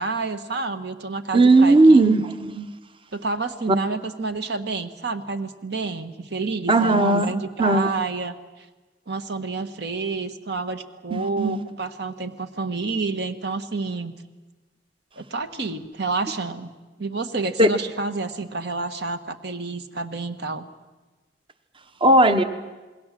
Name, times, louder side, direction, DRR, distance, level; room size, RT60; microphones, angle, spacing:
voice 1, 0.0-2.1 3.1-8.6 9.1-14.1 15.2-16.7 17.0-20.7, right 3 dB, 65° right, 9 dB, 1.5 m, -29 dB
voice 2, 1.3-2.7 3.7-3.8 6.7-7.3 7.6-7.9 11.1-11.6 17.6-17.7 22.0-22.4, right 2 dB, 30° right, 10 dB, 1.1 m, -16 dB
27.5 x 21.0 x 7.6 m, 1.2 s
head